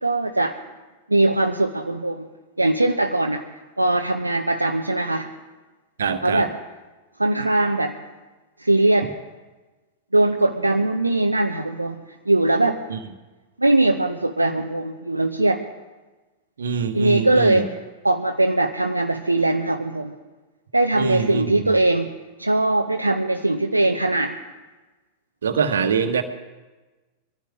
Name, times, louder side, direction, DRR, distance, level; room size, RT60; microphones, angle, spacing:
voice 1, 0.0-0.6 1.1-2.3 2.6-3.4 3.8-5.3 6.2-6.5 7.2-8.0 8.6-9.1 10.1-12.8 13.6-15.7 16.9-17.7 18.0-20.1 20.7-24.4, right 2 dB, 85° right, 3 dB, 0.8 m, -21 dB
voice 2, 6.0-6.5 12.9-13.0 16.6-17.7 20.9-21.7 25.4-26.2, right 6 dB, 70° right, 7 dB, 1.5 m, -24 dB
23.5 x 15.0 x 3.7 m, 1.2 s
figure-of-eight pair, 90°, 0 cm